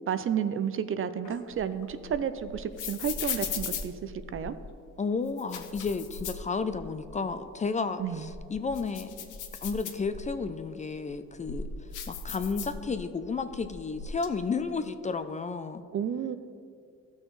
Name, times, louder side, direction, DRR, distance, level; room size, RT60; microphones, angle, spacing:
voice 1, 0.1-4.5 8.0-8.2 15.9-16.4, right 8 dB, 45° right, 12 dB, 0.5 m, -31 dB
sound 1, 1.2-4.7 5.3-7.1 7.4-7.5 8.1-10.4 11.0-13.2 13.5-14.3, left 6 dB, 85° left, 0.8 m, -38 dB
voice 2, 5.0-9.2 9.6-11.7 12.1-15.8, left 4 dB, 25° left, 10 dB, 0.4 m, -32 dB
14.0 x 6.3 x 3.1 m, 2.3 s
cardioid pair, 90°, 30 cm